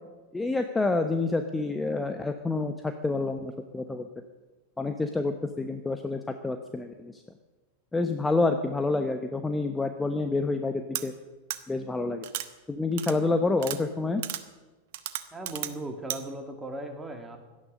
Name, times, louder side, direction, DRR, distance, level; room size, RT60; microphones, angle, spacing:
voice 1, 0.3-4.1 4.8-7.2 7.9-11.1 11.7-12.3 12.7-14.2, left 3 dB, 10° left, 7 dB, 1.0 m, -28 dB
sound 1, 10.9-11.0 11.5-11.6 12.2-12.5 13.0-13.1 13.6-13.8 14.2-14.4 14.9-15.7 16.1-16.2, right 14 dB, 50° right, 1.1 m, -33 dB
voice 2, 15.3-17.4, right 1 dB, 10° right, 4 dB, 2.6 m, -37 dB
17.5 x 12.5 x 6.5 m, 1.2 s
figure-of-eight pair, 90°, 0 cm